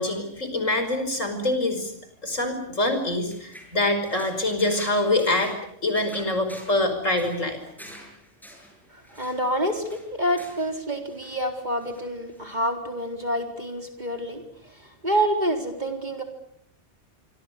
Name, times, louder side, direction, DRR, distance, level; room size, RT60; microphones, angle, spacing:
voice 1, 0.0-1.9 2.2-5.5 5.8-7.6, left 2 dB, 80° left, 8 dB, 5.8 m, -25 dB
sound 1, 2.9-10.8 11.1-11.5 11.8-12.6, equal, ahead, 7.4 m, -47 dB
voice 2, 8.9-16.2, right 1 dB, 35° right, 4 dB, 4.2 m, -28 dB
26.0 x 25.0 x 6.8 m, 0.69 s
omnidirectional pair, 1.3 m